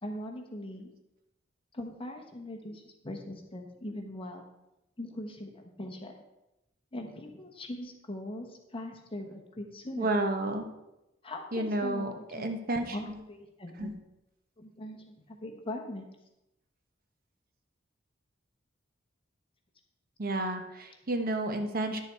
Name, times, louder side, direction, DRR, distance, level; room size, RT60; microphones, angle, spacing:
voice 1, 0.0-0.9 1.7-4.4 5.0-6.1 6.9-10.1 11.2-12.5 12.8-14.0 14.6-16.0, left 1 dB, 30° left, 2 dB, 1.2 m, -41 dB
voice 2, 10.0-10.7 11.5-13.2 13.8-13.9 20.2-22.0, right 2 dB, 50° right, 5 dB, 1.0 m, -31 dB
10.5 x 6.8 x 4.6 m, 0.92 s
head